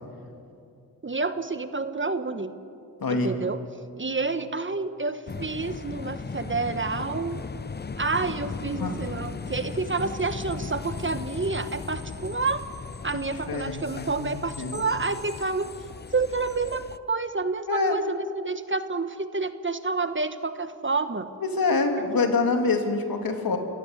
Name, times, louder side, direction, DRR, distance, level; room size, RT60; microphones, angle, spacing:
voice 1, 1.0-2.5 3.1-3.6 4.0-7.4 8.0-12.6 13.0-15.7 16.1-21.3, right 3 dB, 35° right, 10 dB, 1.4 m, -29 dB
voice 2, 3.0-3.3 8.8-8.9 13.1-14.8 17.7-18.0 21.4-23.6, left 3 dB, 75° left, 4 dB, 2.8 m, -26 dB
sound 1, 5.3-17.0, left 5 dB, 30° left, 0.7 m, -37 dB
26.0 x 15.0 x 8.1 m, 2.6 s
cardioid pair, 50°, 36 cm